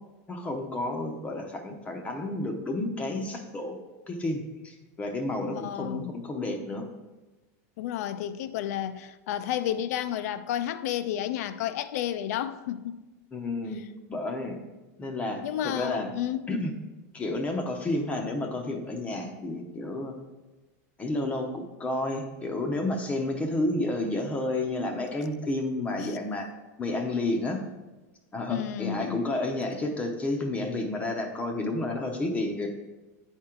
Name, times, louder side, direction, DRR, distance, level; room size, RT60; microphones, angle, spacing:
voice 1, 0.3-3.7 4.1-6.9 13.3-13.8 14.1-14.6 15.0-15.4 15.7-16.1 16.5-16.7 17.1-20.1 21.0-26.5 26.8-27.6 28.3-32.8, left 2 dB, 15° left, 0.6 m, -31 dB
voice 2, 5.6-6.1 7.8-13.0 15.4-16.5 26.0-26.2 28.5-29.2, left 11 dB, 65° left, 0.5 m, -31 dB
8.8 x 4.4 x 3.7 m
supercardioid pair, 155°, 9 cm